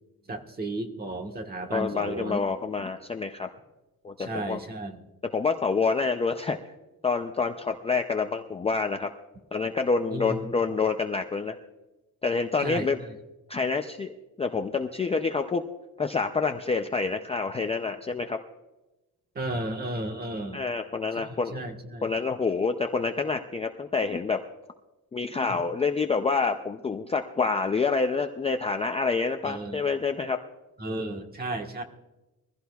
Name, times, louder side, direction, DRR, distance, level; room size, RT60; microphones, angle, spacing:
voice 1, 0.3-2.4 2.8-2.9 4.2-5.0 10.1-10.5 12.6-13.1 19.3-20.6 21.2-22.1 25.5-25.6 29.4-29.8 30.8-31.8, right 1 dB, 25° right, 4 dB, 1.3 m, -34 dB
voice 2, 1.7-3.5 4.0-4.6 5.3-6.6 7.0-9.1 9.5-11.6 12.2-13.0 13.5-15.6 16.0-18.4 20.5-21.6 22.0-24.4 25.1-30.4, left 4 dB, 15° left, 5 dB, 0.4 m, -27 dB
22.5 x 15.5 x 2.3 m, 1.0 s
cardioid pair, 175°, 37 cm